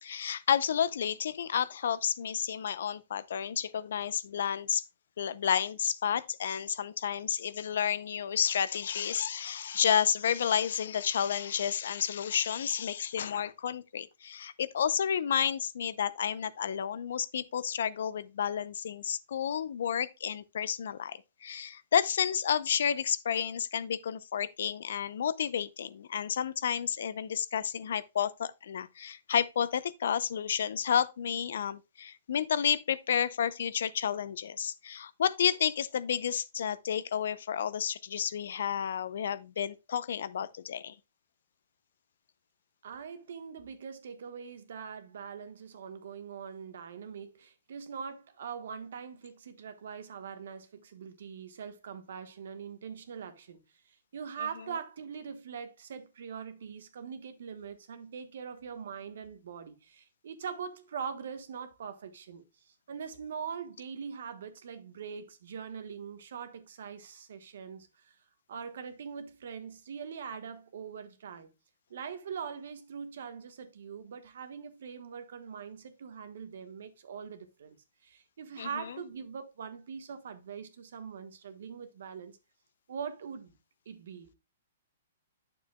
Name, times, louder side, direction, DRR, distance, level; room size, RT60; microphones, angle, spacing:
voice 1, 0.0-4.8 5.2-40.9 78.6-78.9, left 8 dB, 70° left, 0.6 m, -31 dB
voice 2, 42.8-53.6 53.9-68.2 68.5-71.5 71.9-77.8 78.0-82.4 82.9-83.6 83.8-84.3, right 6 dB, 70° right, 1.3 m, -42 dB
8.8 x 6.8 x 2.3 m
hypercardioid pair, 145°, 0 cm